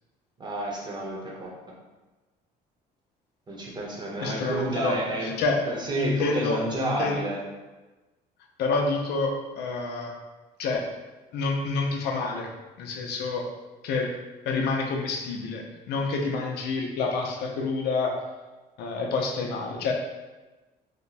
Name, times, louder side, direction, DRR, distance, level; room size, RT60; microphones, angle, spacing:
voice 1, 0.4-1.5 3.5-5.4 5.7-7.4, right 1 dB, 25° right, -3 dB, 0.9 m, -30 dB
voice 2, 4.2-5.6 5.9-7.2 8.6-10.1 10.6-10.9 11.3-12.5 12.8-13.5 13.8-14.2 14.5-18.2 18.8-19.9, left 3 dB, 75° left, 2 dB, 0.6 m, -28 dB
2.8 x 2.2 x 4.0 m, 1.2 s
cardioid pair, 110°, 17 cm